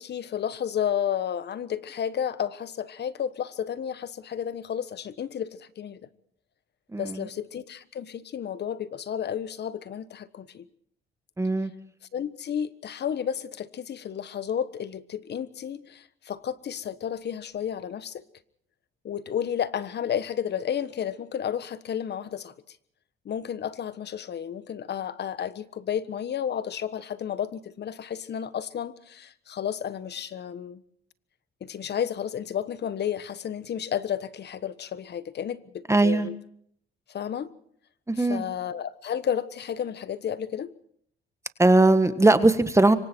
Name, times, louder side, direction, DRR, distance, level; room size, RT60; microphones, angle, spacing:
voice 1, 0.0-6.0 7.0-10.6 12.1-18.2 19.0-22.8 23.2-30.8 31.6-36.4 37.1-37.5 38.2-40.7, left 9 dB, 60° left, 15 dB, 1.3 m, -32 dB
voice 2, 6.9-7.3 11.4-11.7 35.9-36.3 38.1-38.4 41.6-42.9, right 2 dB, 15° right, 11 dB, 1.5 m, -20 dB
25.5 x 24.0 x 4.5 m, 0.65 s
cardioid pair, 90°, 20 cm